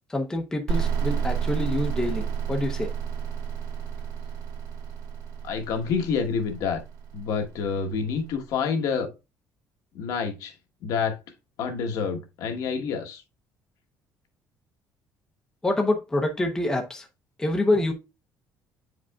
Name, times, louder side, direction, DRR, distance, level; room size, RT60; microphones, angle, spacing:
voice 1, 0.1-2.9 15.6-17.1 17.4-17.9, left 2 dB, 10° left, 0.7 m, -26 dB
sound 1, 0.7-8.2, right 7 dB, 75° right, 2.1 m, -31 dB
voice 2, 5.4-6.8 7.1-9.1 9.9-10.5 10.8-11.2 11.6-13.2, left 6 dB, 60° left, 1.3 m, -28 dB
9.4 x 5.0 x 2.3 m
cardioid pair, 175°, 7 cm